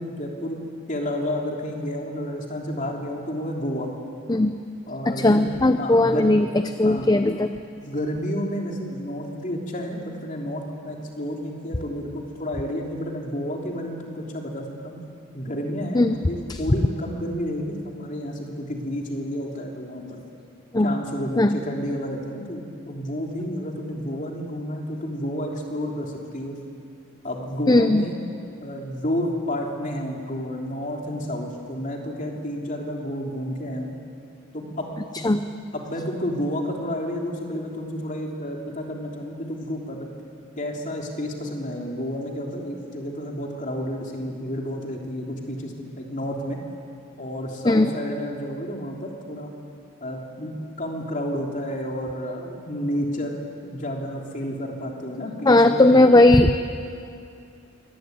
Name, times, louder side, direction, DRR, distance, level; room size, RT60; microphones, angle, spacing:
voice 1, 0.0-3.9 4.9-5.5 5.8-6.3 6.8-7.1 7.8-15.0 15.3-20.2 20.8-26.6 27.2-28.2 28.6-33.9 34.5-34.9 35.1-35.3 35.7-40.1 40.6-46.6 47.2-49.5 50.0-53.4 53.6-56.1, equal, 35° left, 0 dB, 3.3 m, -30 dB
voice 2, 5.1-6.5 6.8-7.5 15.9-16.2 20.7-21.0 21.4-21.6 27.7-28.1 35.2-35.4 47.7-47.9 55.5-56.5, left 2 dB, 20° left, 9 dB, 0.5 m, -17 dB
24.0 x 19.0 x 9.3 m, 2.5 s
head